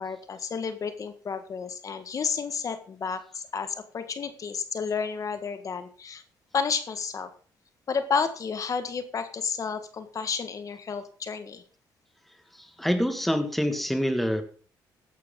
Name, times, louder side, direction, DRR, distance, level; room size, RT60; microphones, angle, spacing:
voice 1, 0.0-6.2 6.5-7.3 7.9-11.6, left 5 dB, 45° left, 9 dB, 1.6 m, -31 dB
voice 2, 12.5-14.4, equal, ahead, 7 dB, 1.9 m, -26 dB
15.5 x 11.5 x 3.8 m, 0.40 s
cardioid pair, 100°, 8 cm